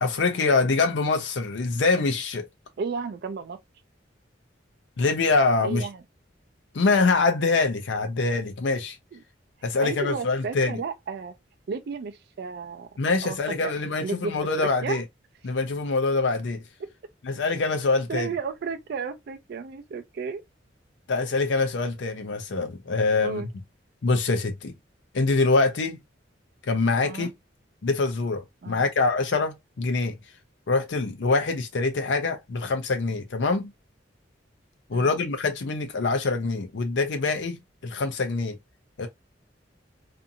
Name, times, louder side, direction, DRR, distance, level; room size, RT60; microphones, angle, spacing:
voice 1, 0.0-2.5 5.0-5.9 6.7-9.0 9.6-10.8 13.0-15.0 15.4-16.6 17.2-18.3 21.1-23.4 24.0-24.7 25.1-26.0 26.6-27.3 27.8-30.1 30.7-33.7 34.9-38.6 39.0-39.1, left 3 dB, 70° left, 0.5 m, -24 dB
voice 2, 2.8-3.6 5.6-6.0 9.1-9.2 9.8-11.3 11.7-12.9 13.2-13.4 13.6-13.7 14.0-14.3 14.6-15.0 18.1-20.4 23.2-23.5 27.0-27.3 28.6-28.8 34.9-35.1, right 5 dB, 60° right, 0.4 m, -33 dB
2.6 x 2.5 x 2.6 m
head